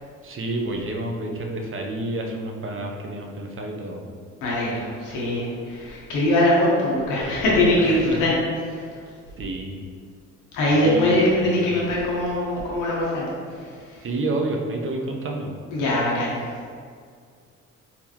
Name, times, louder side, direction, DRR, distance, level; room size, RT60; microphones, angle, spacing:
voice 1, 0.2-4.1 7.8-8.2 9.4-9.8 10.7-11.7 14.0-15.6, right 2 dB, 45° right, 1 dB, 0.7 m, -29 dB
voice 2, 4.4-8.3 8.6-8.8 10.5-14.0 15.7-16.6, left 1 dB, 90° left, -6 dB, 1.2 m, -22 dB
4.2 x 3.6 x 2.9 m, 2.1 s
cardioid pair, 90°, 30 cm